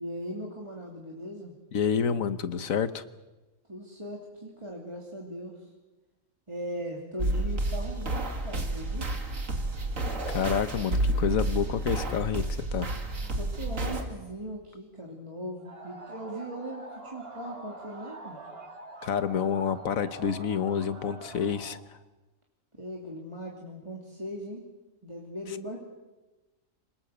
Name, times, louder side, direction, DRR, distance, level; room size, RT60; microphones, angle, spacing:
voice 1, 0.0-1.5 3.7-5.7 6.5-9.2 13.4-18.4 22.8-24.6 25.0-25.8, equal, 20° right, -2 dB, 2.9 m, -39 dB
voice 2, 1.7-3.0 10.3-12.4 12.7-12.9 19.0-22.0, left 7 dB, 90° left, 13 dB, 1.5 m, -28 dB
sound 1, 7.2-14.0, right 2 dB, 75° right, 2.8 m, -30 dB
sound 2, 15.6-21.8, right 2 dB, 45° right, 2.2 m, -45 dB
27.0 x 19.5 x 8.1 m, 1.1 s
omnidirectional pair, 1.4 m